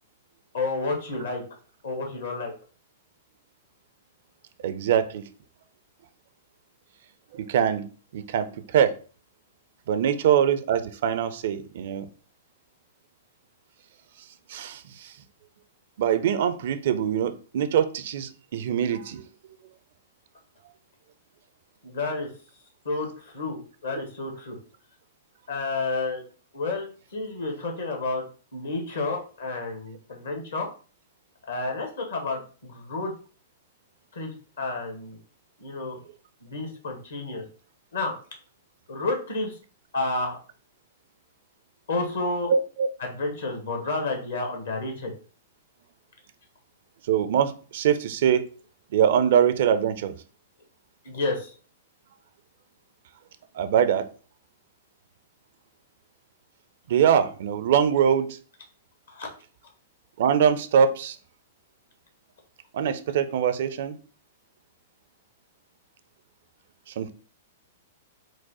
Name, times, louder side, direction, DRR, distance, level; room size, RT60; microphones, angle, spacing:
voice 1, 0.5-1.4 1.8-2.5 21.8-22.3 22.8-24.6 25.5-26.2 26.5-28.2 28.5-30.7 31.5-33.1 34.1-35.2 35.6-36.0 36.4-37.4 37.9-38.1 38.9-39.5 39.9-40.4 41.9-42.5 43.0-45.1 51.0-51.5 59.1-59.3, left 3 dB, 65° left, 3 dB, 1.4 m, -30 dB
voice 2, 4.6-5.2 7.3-7.8 8.1-8.9 9.9-12.1 14.5-15.1 16.0-19.2 42.5-42.9 47.1-48.5 48.9-50.1 53.5-54.1 56.9-58.4 60.2-61.2 62.7-64.0 67.0-67.1, right 8 dB, 55° right, 12 dB, 0.4 m, -23 dB
4.6 x 2.1 x 4.1 m, 0.38 s
figure-of-eight pair, 105°, 0 cm